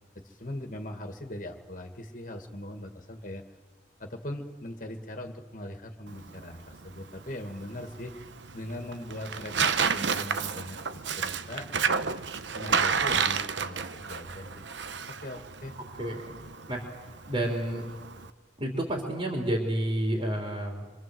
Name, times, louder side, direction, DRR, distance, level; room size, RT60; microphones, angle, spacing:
voice 1, 0.2-3.5 4.0-8.1 8.5-11.7 12.5-14.5 15.1-15.7, left 1 dB, 45° left, 4 dB, 2.0 m, -40 dB
Tearing, 6.1-18.3, right 6 dB, 80° right, 1.0 m, -31 dB
voice 2, 16.0-16.4 16.7-16.9 17.3-17.9 18.6-20.8, right 1 dB, 30° right, 0 dB, 3.5 m, -30 dB
26.5 x 24.5 x 7.8 m, 1.3 s
head